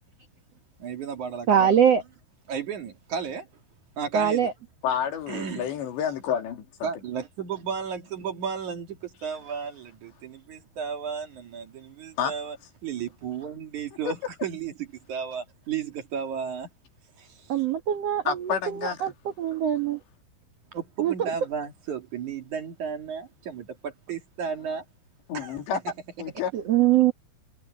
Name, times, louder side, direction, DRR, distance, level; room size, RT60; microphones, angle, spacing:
voice 1, 0.8-1.7 2.5-3.5 4.0-4.5 5.3-5.7 6.8-12.6 12.8-16.7 17.2-17.6 20.7-24.8 25.3-25.6, right 7 dB, 50° right, 3.2 m, -34 dB
voice 2, 1.5-2.0 4.1-4.5 17.5-19.1 19.4-20.0 21.0-21.1 26.5-27.1, right 9 dB, 70° right, 1.5 m, -22 dB
voice 3, 4.8-6.9 12.2-12.3 14.1-14.2 18.3-19.1 25.3-25.8 26.2-26.5, left 8 dB, 90° left, 5.1 m, -29 dB
omnidirectional pair, 4.9 m